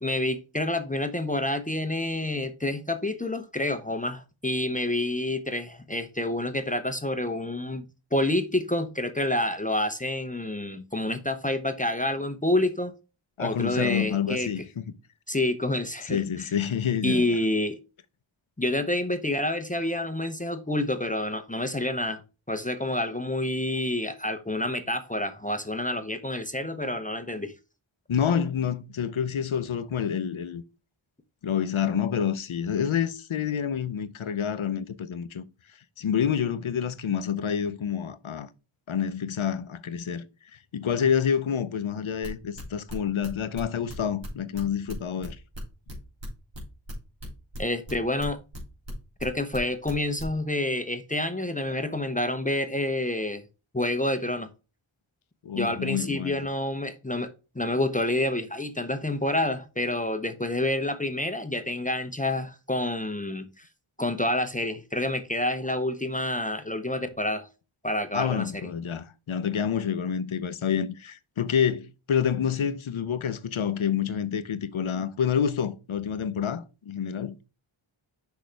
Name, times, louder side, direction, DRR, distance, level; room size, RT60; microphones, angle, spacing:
voice 1, 0.0-12.9 13.4-14.5 15.3-16.5 17.0-17.8 18.6-22.2 22.5-27.5 47.6-48.4 49.2-53.4 53.7-54.5 55.5-63.5 64.0-67.5 67.8-68.6, left 1 dB, 15° left, 0.8 m, -28 dB
voice 2, 13.4-14.8 16.1-17.4 28.1-30.6 31.4-35.4 36.0-38.5 38.9-40.3 40.5-45.4 55.4-56.5 68.1-77.4, left 8 dB, 75° left, 0.8 m, -28 dB
sound 1, 42.2-47.9 48.2-49.6 49.8-50.2, equal, 60° right, 3.3 m, -39 dB
6.3 x 5.7 x 3.3 m
wide cardioid pair, 65°, 48 cm